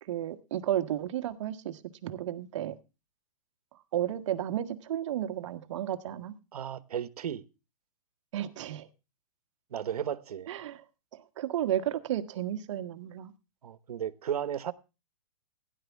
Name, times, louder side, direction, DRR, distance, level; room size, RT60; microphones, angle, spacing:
voice 1, 0.0-2.7 3.9-6.3 8.3-8.9 10.5-10.8 11.1-13.3, right 11 dB, 50° right, 1.4 m, -33 dB
voice 2, 6.5-7.4 9.7-10.5 13.6-14.7, right 9 dB, 80° right, 1.2 m, -34 dB
17.0 x 10.5 x 3.5 m
hypercardioid pair, 160°, 19 cm